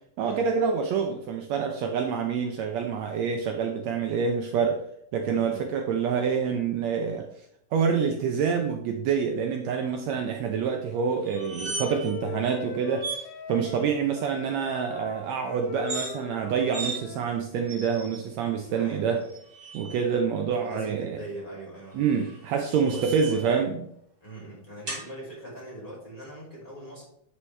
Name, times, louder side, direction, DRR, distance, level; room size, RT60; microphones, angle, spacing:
voice 1, 0.2-4.8 5.1-7.3 7.7-19.2 19.7-21.2 21.9-23.9, right 6 dB, 75° right, 3 dB, 1.8 m, -27 dB
voice 2, 5.2-5.6 13.6-13.8 18.7-19.2 20.5-22.1 22.7-23.4 24.2-27.0, right 1 dB, 15° left, -6 dB, 2.8 m, -41 dB
Wind instrument woodwind instrument, 10.9-17.3, left 7 dB, 90° left, 1.2 m, -41 dB
sound 1, 11.2-12.1 12.4-12.6 13.0-13.2 15.7-16.1 16.7-17.0 17.7-18.2 19.2-20.0 21.9-23.5 24.9-25.1, right 3 dB, 35° right, 2.3 m, -37 dB
9.8 x 4.9 x 3.2 m, 0.71 s
omnidirectional pair, 3.4 m